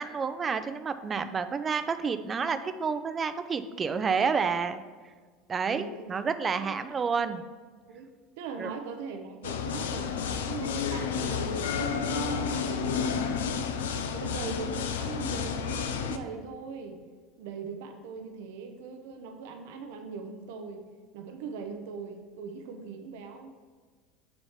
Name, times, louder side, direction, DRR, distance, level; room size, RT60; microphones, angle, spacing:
voice 1, 0.0-4.8 5.5-7.4 8.6-8.7, right 5 dB, 30° right, 11 dB, 0.5 m, -29 dB
voice 2, 5.6-6.1 6.5-6.8 7.9-8.1 8.4-13.6 14.1-17.0 17.4-20.8 21.1-23.6, right 4 dB, 75° right, 5 dB, 0.7 m, -40 dB
sound 1, 9.4-16.2, left 6 dB, 85° left, 0.5 m, -31 dB
7.2 x 3.2 x 5.7 m, 1.5 s
hypercardioid pair, 85°, 0 cm